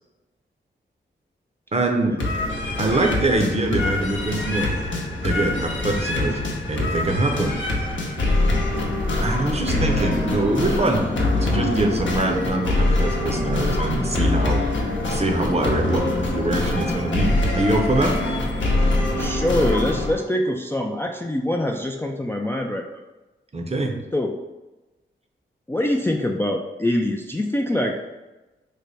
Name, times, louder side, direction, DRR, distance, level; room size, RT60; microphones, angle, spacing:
voice 1, 1.7-2.2 2.8-4.7 5.2-6.4 6.7-7.6 9.2-11.0 11.4-14.6 15.1-16.0 16.3-18.1 23.5-23.9, right 2 dB, 30° right, 2 dB, 0.7 m, -23 dB
sound 1, 2.2-20.1, left 2 dB, 65° left, 0.8 m, -24 dB
voice 2, 8.5-8.8 19.2-22.9 24.1-24.4 25.7-28.0, left 1 dB, 10° left, 1 dB, 0.3 m, -24 dB
3.3 x 2.1 x 4.0 m, 1.1 s
cardioid pair, 45°, 20 cm